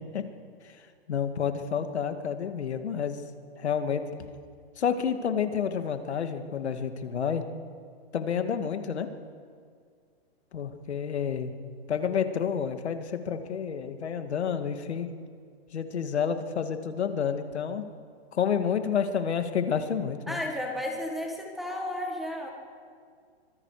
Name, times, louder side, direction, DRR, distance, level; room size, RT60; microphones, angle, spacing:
voice 1, 1.1-3.2 3.6-4.0 4.8-7.4 8.1-9.1 10.5-11.5 11.9-15.1 15.7-17.9 18.3-20.4, left 7 dB, 85° left, 8 dB, 2.1 m, -29 dB
voice 2, 20.3-22.5, left 1 dB, ahead, 1 dB, 1.6 m, -33 dB
25.5 x 23.0 x 5.0 m, 2.1 s
hypercardioid pair, 170°, 32 cm